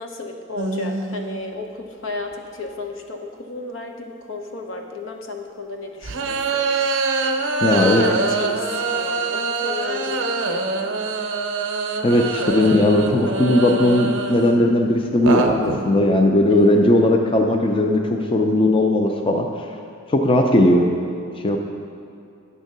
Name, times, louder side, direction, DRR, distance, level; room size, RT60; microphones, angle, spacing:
voice 1, 0.0-6.6 7.5-10.8 16.5-16.9, left 3 dB, 75° left, 3 dB, 0.8 m, -33 dB
sound 1, 0.6-1.5 2.3-2.4 6.0-14.6 15.1-16.0, right 3 dB, 75° right, 0.6 m, -24 dB
voice 2, 7.6-8.0 12.0-19.5 20.1-20.9 21.4-21.6, left 1 dB, 25° left, 3 dB, 0.4 m, -17 dB
9.1 x 3.6 x 6.6 m, 2.6 s
head